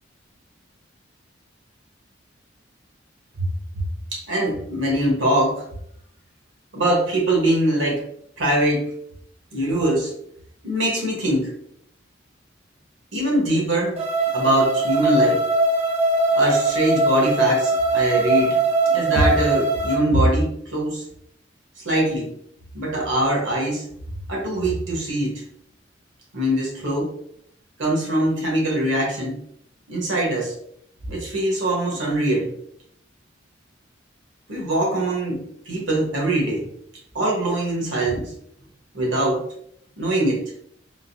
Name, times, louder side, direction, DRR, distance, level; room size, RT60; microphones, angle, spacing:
voice 1, 4.1-5.6 6.7-8.0 8.4-8.9 9.5-10.1 10.6-11.5 13.1-14.0 14.3-15.4 16.3-18.6 18.9-21.0 21.8-22.3 22.7-23.8 24.3-25.4 26.3-27.1 27.8-29.4 29.9-30.5 31.1-32.5 34.5-36.7 37.1-38.3 38.9-39.4 40.0-40.5, right 1 dB, 85° right, -2 dB, 1.3 m, -22 dB
sound 1, 14.0-19.9, right 2 dB, 30° right, 0.4 m, -21 dB
3.7 x 2.6 x 2.7 m, 0.70 s
head